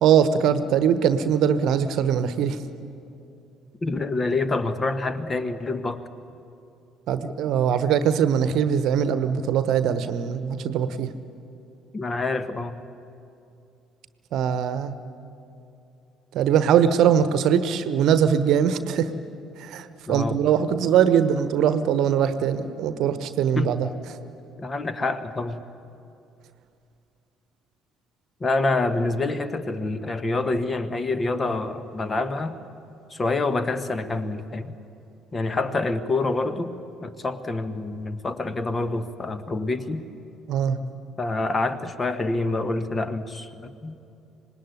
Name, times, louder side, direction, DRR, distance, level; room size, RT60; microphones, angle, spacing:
voice 1, 0.0-2.6 7.1-11.1 14.3-15.0 16.3-19.1 19.6-23.9 40.5-40.8, right 8 dB, 55° right, 12 dB, 1.1 m, -21 dB
voice 2, 3.8-6.0 11.9-12.8 20.1-20.4 23.6-23.7 24.6-25.6 28.4-32.6 33.1-34.7 35.3-36.7 37.0-40.1 41.2-44.0, left 2 dB, 25° left, 12 dB, 1.4 m, -27 dB
25.5 x 20.0 x 9.6 m, 2.7 s
figure-of-eight pair, 50°, 0 cm